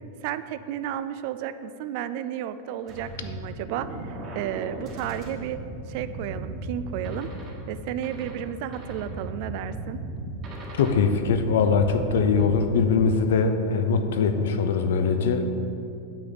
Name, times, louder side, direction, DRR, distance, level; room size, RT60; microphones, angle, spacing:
voice 1, 0.2-5.6 5.9-7.3 7.7-10.0, right 10 dB, 45° right, 13 dB, 0.3 m, -33 dB
sound 1, 2.9-13.1, right 2 dB, 25° right, 1.4 m, -36 dB
voice 2, 10.8-15.5, left 5 dB, 80° left, 8 dB, 0.7 m, -22 dB
8.5 x 4.1 x 6.9 m, 2.7 s
supercardioid pair, 170°, 0 cm